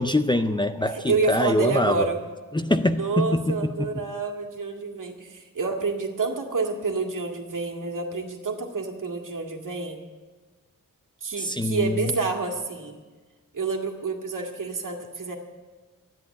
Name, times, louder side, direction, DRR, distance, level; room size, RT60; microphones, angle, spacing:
voice 1, 0.0-2.1 2.5-3.9 11.4-12.1, left 1 dB, 15° left, 8 dB, 0.4 m, -24 dB
voice 2, 0.9-2.2 2.9-10.0 11.2-13.0 13.5-15.4, right 4 dB, 70° right, 2 dB, 2.0 m, -28 dB
13.5 x 10.5 x 8.3 m, 1.3 s
wide cardioid pair, 180°, 33 cm